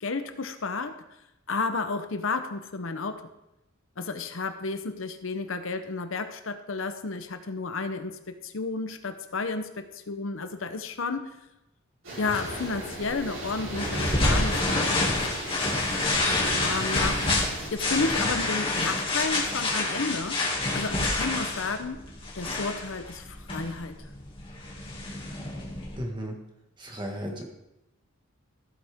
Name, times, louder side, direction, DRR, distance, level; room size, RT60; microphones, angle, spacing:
voice 1, 0.0-1.0 1.5-3.3 4.0-11.3 12.2-15.2 16.6-17.3 17.7-20.5 20.7-22.0 22.3-24.0, left 3 dB, 70° left, 8 dB, 0.8 m, -32 dB
sound 1, 12.0-17.7, right 1 dB, 65° right, 4.5 m, -37 dB
sound 2, 12.3-26.0, left 2 dB, 25° left, 2.2 m, -28 dB
voice 2, 26.0-26.3 26.8-27.4, equal, 20° right, 1 dB, 1.7 m, -34 dB
14.5 x 8.4 x 3.6 m, 0.91 s
head